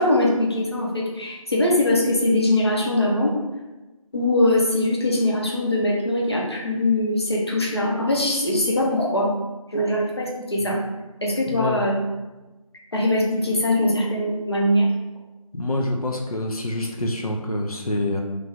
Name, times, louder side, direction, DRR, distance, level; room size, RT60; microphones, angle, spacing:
voice 1, 0.0-3.4 4.1-9.4 9.7-10.8 11.2-12.0 12.9-14.9, left 1 dB, 45° left, -2 dB, 0.7 m, -22 dB
voice 2, 11.5-11.8 15.5-18.2, left 1 dB, 90° left, 1 dB, 0.6 m, -26 dB
3.2 x 2.3 x 3.6 m, 1.1 s
figure-of-eight pair, 170°, 18 cm